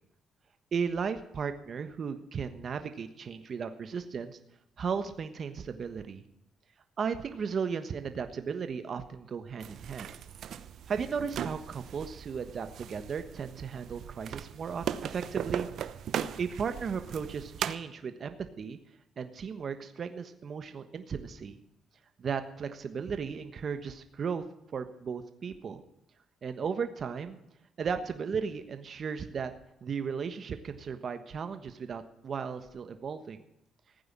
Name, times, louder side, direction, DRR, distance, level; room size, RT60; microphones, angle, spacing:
voice 1, 0.7-4.4 4.8-6.2 7.0-10.1 10.9-15.7 16.4-18.8 19.2-21.6 22.2-24.4 24.7-25.8 26.4-27.4 27.8-29.5 29.8-33.4, right 6 dB, 50° right, 9 dB, 1.3 m, -35 dB
sound 1, 9.6-17.8, right 9 dB, 70° right, 0.9 m, -38 dB
15.5 x 9.3 x 7.4 m, 0.82 s
cardioid pair, 90°, 0 cm